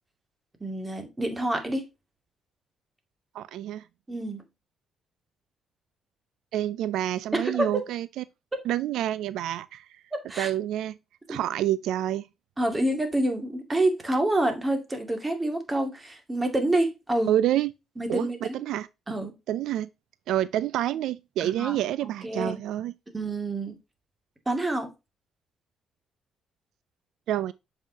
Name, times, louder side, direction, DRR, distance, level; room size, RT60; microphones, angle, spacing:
voice 1, 0.6-1.8 4.1-4.4 7.3-7.9 8.5-8.6 10.1-10.5 11.3-11.4 12.6-17.3 18.0-18.6 19.1-19.3 21.4-22.6 23.1-23.7 24.5-24.9, right 1 dB, 20° right, 2.2 m, -27 dB
voice 2, 3.3-3.8 6.5-8.2 8.7-9.9 10.4-11.0 11.3-12.3 17.3-17.7 18.1-18.9 19.5-19.9 20.3-22.9 27.3-27.5, right 12 dB, 85° right, 0.3 m, -28 dB
7.4 x 5.4 x 2.8 m
cardioid pair, 90°, 0 cm